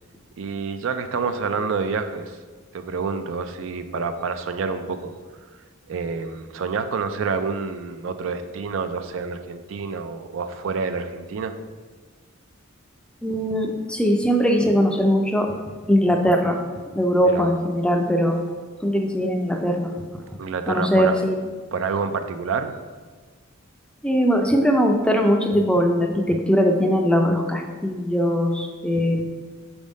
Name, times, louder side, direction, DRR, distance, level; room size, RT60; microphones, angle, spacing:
voice 1, 0.4-2.3 2.7-5.1 5.9-11.6 17.2-17.5 20.4-21.2 21.7-22.7, right 5 dB, 60° right, 9 dB, 0.4 m, -28 dB
voice 2, 13.2-15.5 15.9-16.6 16.9-18.4 18.8-19.9 20.7-21.3 24.0-29.2, equal, 5° left, 3 dB, 0.4 m, -20 dB
6.3 x 3.6 x 5.1 m, 1.5 s
head